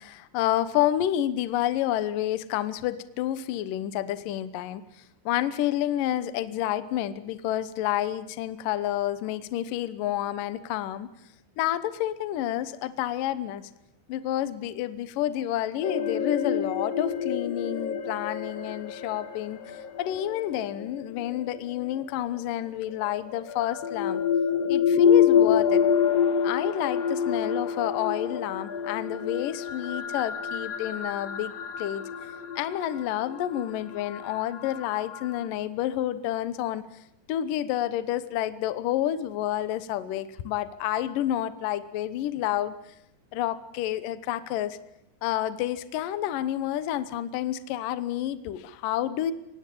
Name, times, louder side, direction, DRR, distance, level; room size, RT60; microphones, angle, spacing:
voice 1, 0.0-4.8 5.3-11.1 11.6-13.7 14.1-19.6 20.0-24.2 24.7-25.8 26.4-32.1 32.6-36.8 37.3-42.7 43.3-44.8 45.2-49.3, left 12 dB, 70° left, 14 dB, 2.2 m, -29 dB
sound 1, 15.8-21.9 23.0-35.4, left 8 dB, 90° left, 1.4 m, -27 dB
24.0 x 20.0 x 8.7 m, 0.84 s
omnidirectional pair, 4.9 m